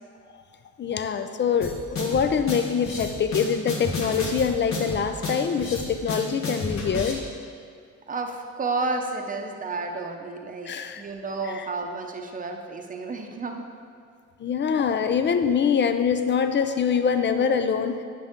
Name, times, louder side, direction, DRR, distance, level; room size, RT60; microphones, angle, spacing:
voice 1, 0.8-7.2 10.7-11.0 14.4-18.0, left 6 dB, 35° left, 9 dB, 0.5 m, -24 dB
sound 1, 1.6-7.1, left 2 dB, 60° left, 1.7 m, -31 dB
voice 2, 8.1-13.6, right 3 dB, 25° right, 3 dB, 0.8 m, -31 dB
9.1 x 5.7 x 3.7 m, 2.2 s
cardioid pair, 90°, 30 cm